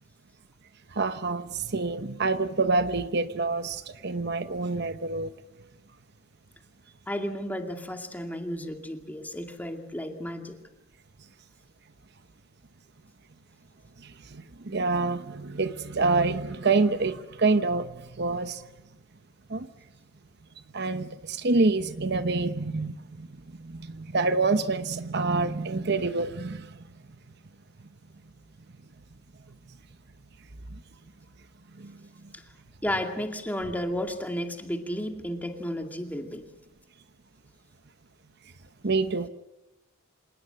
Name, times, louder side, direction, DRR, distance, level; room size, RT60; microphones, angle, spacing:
voice 1, 1.0-5.3 14.3-17.9 18.2-18.6 19.5-19.7 20.7-23.3 23.6-26.7 38.8-39.3, right 3 dB, 55° right, 11 dB, 1.0 m, -27 dB
voice 2, 7.1-10.6 32.3-32.4 32.8-36.4, equal, 10° left, 4 dB, 2.2 m, -33 dB
27.0 x 18.5 x 7.8 m, 0.98 s
head